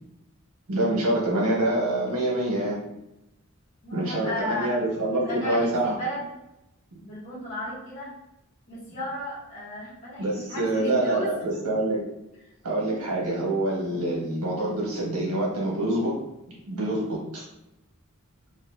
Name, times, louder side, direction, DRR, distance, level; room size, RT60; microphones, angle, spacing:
voice 1, 0.7-2.8 3.9-6.0 10.2-12.0 12.6-16.1 16.7-17.4, right 1 dB, 90° right, -4 dB, 1.4 m, -26 dB
voice 2, 3.8-4.7 5.1-6.2 7.0-8.1 8.7-11.3 12.8-13.0 16.7-16.9, equal, 40° left, -12 dB, 1.2 m, -34 dB
4.1 x 2.5 x 2.7 m, 0.90 s
head